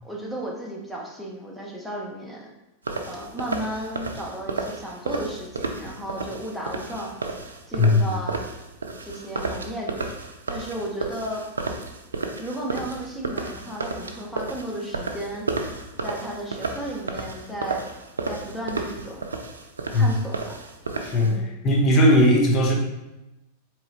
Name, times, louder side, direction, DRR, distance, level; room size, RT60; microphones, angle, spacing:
voice 1, 0.0-2.5 3.0-7.1 7.7-8.4 9.0-10.1 10.5-11.4 12.4-15.5 16.0-17.8 18.2-19.3 19.9-20.5 21.2-21.5, right 1 dB, ahead, -3 dB, 0.9 m, -34 dB
sound 1, 2.8-21.3, right 3 dB, 85° right, 0.4 m, -32 dB
voice 2, 7.8-8.1 19.9-20.1 21.0-22.7, left 1 dB, 35° left, 0 dB, 1.0 m, -18 dB
4.2 x 3.0 x 2.9 m, 0.97 s
hypercardioid pair, 95°, 0 cm